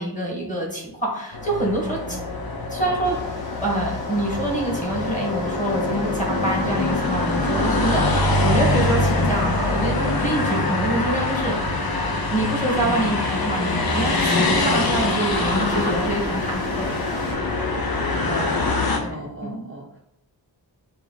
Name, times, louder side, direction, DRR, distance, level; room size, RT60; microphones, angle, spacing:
voice 1, 0.0-2.2 2.7-3.1 3.6-11.9 12.3-17.4 19.0-19.7, right 1 dB, 15° left, -2 dB, 1.6 m, -26 dB
sound 1, 1.3-19.0, left 2 dB, 50° left, 0.8 m, -24 dB
sound 2, 3.0-17.3, left 1 dB, 70° left, 1.1 m, -43 dB
voice 2, 18.2-19.9, right 1 dB, 30° right, -1 dB, 0.6 m, -35 dB
4.4 x 2.4 x 3.9 m, 0.79 s
wide cardioid pair, 50°, 45 cm